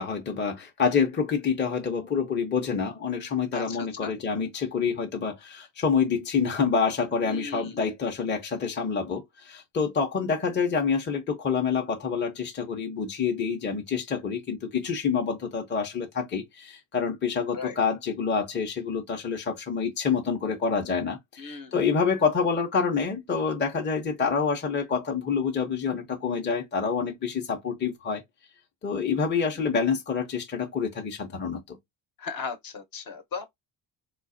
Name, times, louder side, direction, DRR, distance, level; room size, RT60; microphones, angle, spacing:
voice 1, 0.0-28.2 28.8-31.8, left 6 dB, 25° left, 0.7 m, -27 dB
voice 2, 3.5-4.1 7.3-7.7 17.5-17.7 21.4-21.7 32.2-33.5, left 5 dB, 50° left, 1.0 m, -36 dB
3.8 x 2.4 x 2.5 m
cardioid pair, 120°, 43 cm